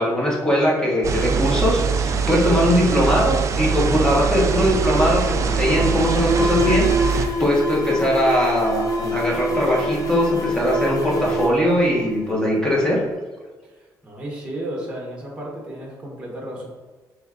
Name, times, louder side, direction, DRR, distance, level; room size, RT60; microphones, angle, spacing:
voice 1, 0.0-13.0, equal, 10° left, -4 dB, 1.2 m, -20 dB
sound 1, 1.0-7.3, right 5 dB, 40° right, 0.4 m, -22 dB
Alarm, 4.1-12.7, equal, 45° left, 0.7 m, -26 dB
voice 2, 14.0-16.7, right 1 dB, 15° right, -3 dB, 1.2 m, -33 dB
5.2 x 3.2 x 2.5 m, 1.3 s
cardioid pair, 125°, 8 cm